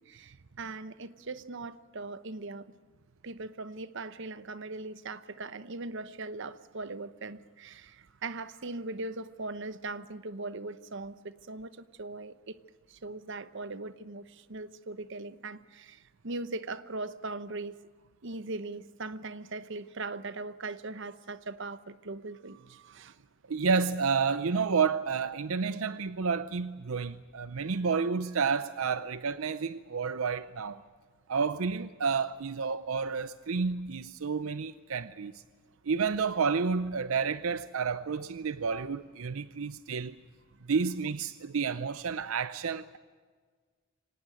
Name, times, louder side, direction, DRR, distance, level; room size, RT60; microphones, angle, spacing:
voice 1, 0.0-2.7 3.2-11.7 12.0-12.6 12.9-17.8 18.2-23.3, right 3 dB, 60° right, 0.9 m, -40 dB
voice 2, 23.5-30.8 31.3-35.3 35.9-40.2 40.7-43.0, right 5 dB, 80° right, 0.6 m, -30 dB
24.5 x 18.5 x 9.2 m
head